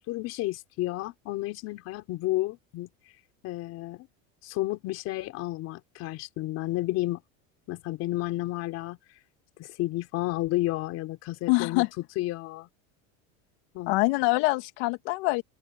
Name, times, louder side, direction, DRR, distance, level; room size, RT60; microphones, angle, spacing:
voice 1, 0.1-2.9 3.4-4.1 4.4-7.2 7.7-9.0 9.6-12.7 13.7-14.0, left 17 dB, 45° left, 4.0 m, -31 dB
voice 2, 11.5-11.9 13.9-15.4, left 24 dB, 65° left, 2.6 m, -24 dB
open air
cardioid pair, 160°, 35 cm